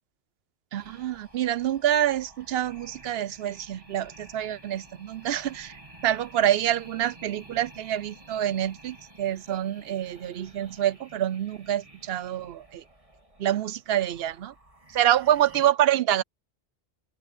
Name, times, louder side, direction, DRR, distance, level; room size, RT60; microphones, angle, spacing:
sound 1, 0.7-15.7, right 2 dB, 30° right, 3.4 m, -52 dB
voice 1, 0.7-5.7 6.0-12.8 13.4-14.5 14.9-16.2, right 11 dB, 65° right, 0.8 m, -26 dB
open air
omnidirectional pair, 1.1 m